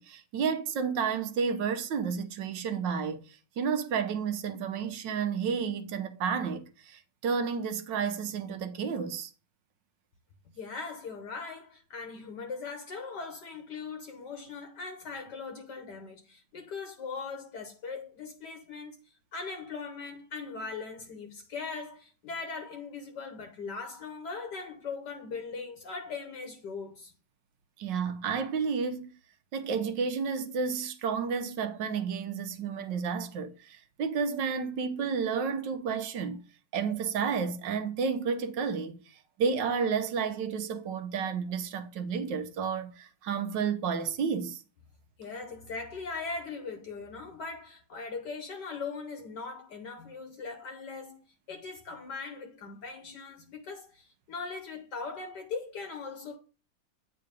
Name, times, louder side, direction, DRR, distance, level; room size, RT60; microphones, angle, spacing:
voice 1, 0.0-9.3 27.8-29.1 29.5-36.4 36.7-44.6, right 6 dB, 75° right, 1.5 m, -31 dB
voice 2, 10.6-19.0 19.3-27.1 45.2-56.4, left 4 dB, 65° left, 1.6 m, -40 dB
8.9 x 3.8 x 5.1 m
omnidirectional pair, 2.0 m